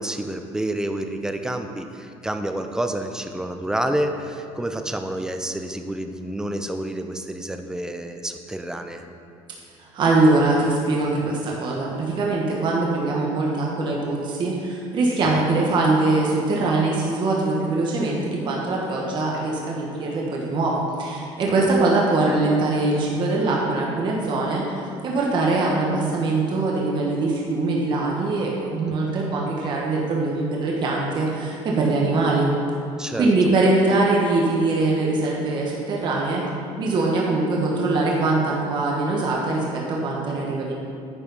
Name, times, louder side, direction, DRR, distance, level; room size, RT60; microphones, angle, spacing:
voice 1, 0.0-9.0 15.4-15.5 21.7-21.8 33.0-33.3, right 1 dB, 5° right, 6 dB, 0.5 m, -29 dB
voice 2, 9.8-32.5 33.2-36.5 36.8-40.7, right 2 dB, 40° right, -3 dB, 1.3 m, -22 dB
9.7 x 4.9 x 5.4 m, 2.5 s
cardioid pair, 145°, 12 cm